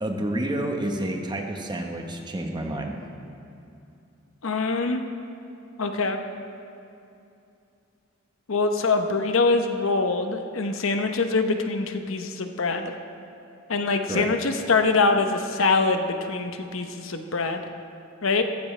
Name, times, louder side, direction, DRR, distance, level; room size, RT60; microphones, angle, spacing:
voice 1, 0.0-2.9 14.1-14.3, right 1 dB, 20° right, 3 dB, 1.1 m, -29 dB
voice 2, 4.4-5.0 5.8-6.2 8.5-12.9 13.7-17.6 18.2-18.4, left 3 dB, 80° left, 6 dB, 0.9 m, -24 dB
15.5 x 14.5 x 3.3 m, 2.7 s
head